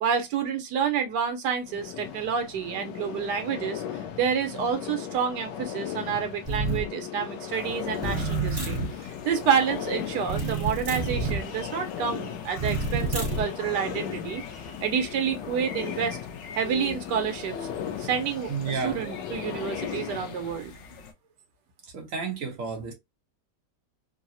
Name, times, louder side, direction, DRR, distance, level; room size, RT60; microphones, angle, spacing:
voice 1, 0.0-3.8 4.2-14.4 14.8-16.2 16.5-17.6 18.0-18.5 18.8-20.7, right 7 dB, 75° right, 1.4 m, -28 dB
sound 1, 1.6-20.6, left 9 dB, 90° left, 1.2 m, -37 dB
sound 2, 6.5-6.9 8.0-8.9 10.3-11.4 12.6-13.5, right 3 dB, 20° right, 1.1 m, -28 dB
sound 3, 7.5-21.1, left 4 dB, 60° left, 0.8 m, -44 dB
voice 2, 18.5-19.0 21.8-22.9, right 5 dB, 55° right, 1.3 m, -31 dB
3.7 x 2.0 x 2.5 m
omnidirectional pair, 1.8 m